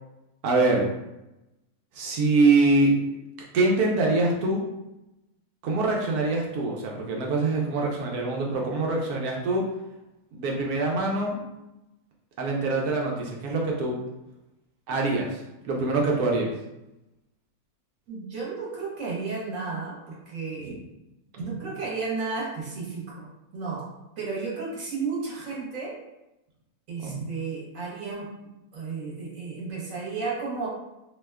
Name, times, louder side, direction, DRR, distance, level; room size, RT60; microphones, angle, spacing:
voice 1, 0.4-0.9 1.9-2.9 3.5-4.6 5.6-9.6 10.3-11.4 12.4-14.0 14.9-16.5 20.6-20.7 27.0-27.3, right 3 dB, 80° right, -1 dB, 1.1 m, -24 dB
voice 2, 18.1-20.7 21.4-23.8 24.2-26.0 26.9-30.7, right 4 dB, 60° right, -5 dB, 1.3 m, -33 dB
2.8 x 2.2 x 3.3 m, 0.93 s
omnidirectional pair, 1.6 m